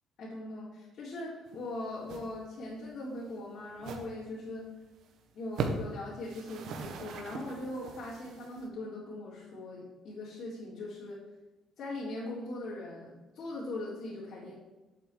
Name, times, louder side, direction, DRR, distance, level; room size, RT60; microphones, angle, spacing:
voice 1, 0.2-4.7 5.3-11.2 11.8-14.5, left 2 dB, 50° left, -8 dB, 4.1 m, -40 dB
sound 1, 1.5-1.7 2.0-2.3 2.6-2.7 3.2-3.3 3.8-4.1 4.5-4.6 4.9-5.1 5.5-5.9 6.2-8.7, right 4 dB, 65° right, 1.6 m, -39 dB
8.2 x 7.9 x 8.7 m, 1.1 s
cardioid pair, 150°, 0 cm